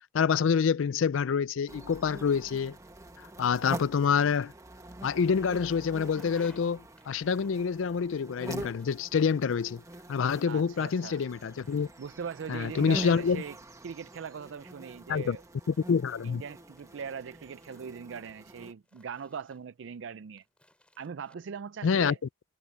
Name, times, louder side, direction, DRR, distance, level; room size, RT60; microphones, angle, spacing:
voice 1, 0.1-2.8 3.4-4.5 5.0-9.8 10.1-11.9 12.5-13.4 15.1-15.4 15.7-16.4 21.8-22.2, left 6 dB, 75° left, 0.4 m, -27 dB
sound 1, 1.7-18.7, right 1 dB, 15° right, 1.2 m, -45 dB
sound 2, 6.1-6.6 7.0-8.0 8.4-9.5 9.9-11.9 12.2-13.7 14.3-16.2 16.8-18.0 18.6-19.9 20.4-21.4, left 1 dB, 5° left, 5.2 m, -62 dB
voice 2, 10.5-11.2 12.0-13.6 13.8-15.4 16.2-20.5 21.0-22.2, right 6 dB, 65° right, 0.4 m, -40 dB
head